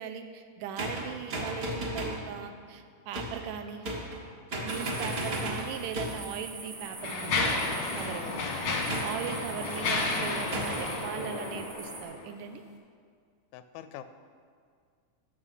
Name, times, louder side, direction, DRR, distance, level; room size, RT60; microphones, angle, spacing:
voice 1, 0.0-3.8 4.6-7.7 7.9-8.3 9.0-12.6, right 7 dB, 80° right, 7 dB, 2.1 m, -39 dB
sound 1, 0.8-2.3 3.1-3.5 3.8-4.3 4.5-6.3 7.4-7.8 8.9-9.4 10.5-10.9, right 1 dB, 50° right, 1.1 m, -34 dB
sound 2, 4.7-12.0, right 4 dB, 65° right, 3.4 m, -45 dB
Mechanisms, 5.6-5.8 6.5-12.3, left 3 dB, 65° left, 1.1 m, -32 dB
voice 2, 8.3-9.0 10.5-11.7 13.5-14.0, left 10 dB, 90° left, 11 dB, 2.3 m, -45 dB
13.0 x 6.7 x 5.6 m, 2.1 s
omnidirectional pair, 3.8 m